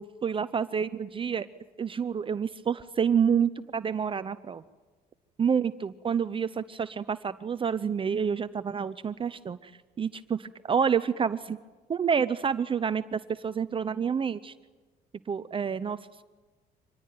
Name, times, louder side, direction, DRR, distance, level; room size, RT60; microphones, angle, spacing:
voice 1, 0.0-1.5 1.8-4.6 5.4-9.7 10.0-11.6 11.9-14.5 15.3-16.2, right 7 dB, 30° right, 13 dB, 0.7 m, -28 dB
25.0 x 19.0 x 9.3 m, 1.3 s
cardioid pair, 110°, 17 cm